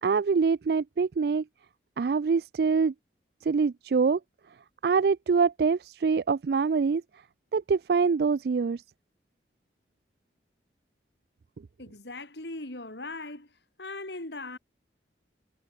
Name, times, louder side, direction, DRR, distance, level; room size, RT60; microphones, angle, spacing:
voice 1, 0.0-1.4 2.0-2.9 3.4-4.2 4.8-7.0 7.5-8.8, right 5 dB, 60° right, 0.4 m, -25 dB
voice 2, 11.8-13.5 13.8-14.6, left 2 dB, 75° left, 3.9 m, -39 dB
head